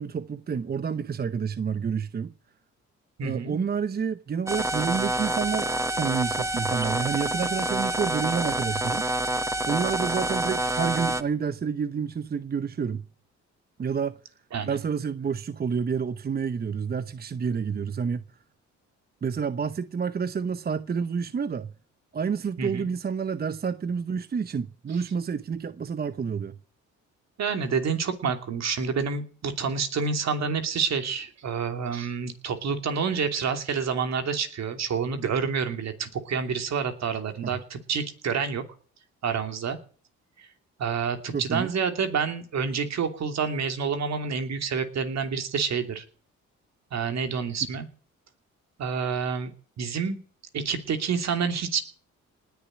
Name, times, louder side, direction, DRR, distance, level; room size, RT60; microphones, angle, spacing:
voice 1, 0.0-2.3 3.2-9.1 9.7-13.0 13.8-14.2 14.6-18.2 19.2-21.7 22.1-26.6 37.4-37.5 41.3-41.7, right 6 dB, 30° right, 0.8 m, -29 dB
voice 2, 3.2-3.6 14.5-14.8 22.6-22.8 27.4-38.6 39.2-39.8 40.4-40.5 40.8-46.0 46.9-47.9 48.8-49.5 49.8-50.2 50.5-51.8, right 6 dB, 60° right, 2.9 m, -28 dB
sound 1, 4.5-11.2, right 1 dB, 10° right, 1.1 m, -27 dB
19.5 x 7.0 x 10.0 m
cardioid pair, 90°, 30 cm